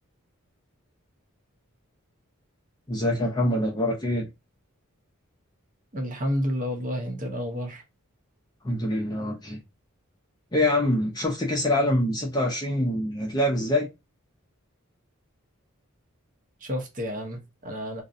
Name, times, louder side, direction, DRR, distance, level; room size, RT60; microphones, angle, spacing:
voice 1, 2.9-4.3 8.6-9.6 10.5-13.9, left 1 dB, 20° left, 0.4 m, -25 dB
voice 2, 5.9-7.8 16.6-18.0, equal, 40° right, 0.6 m, -30 dB
2.5 x 2.0 x 2.4 m
head